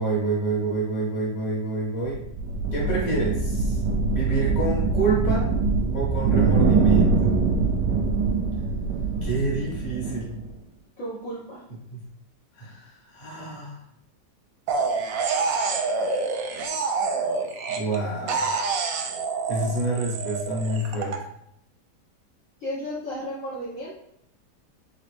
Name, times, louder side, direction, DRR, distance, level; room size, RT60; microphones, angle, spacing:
voice 1, 0.0-2.2 2.7-3.8 4.1-5.5 5.9-7.3 9.2-10.4 11.9-12.0 12.5-13.8 17.7-18.5 19.5-21.2, right 2 dB, 30° left, -4 dB, 1.2 m, -28 dB
sound 1, 2.1-10.5, right 4 dB, 90° right, 1.3 m, -23 dB
voice 2, 11.0-11.6 22.6-24.0, equal, 60° left, -5 dB, 1.1 m, -33 dB
sound 2, 14.7-18.0 18.3-21.2, right 4 dB, 65° right, 0.9 m, -27 dB
3.9 x 3.3 x 3.3 m, 0.77 s
omnidirectional pair, 1.9 m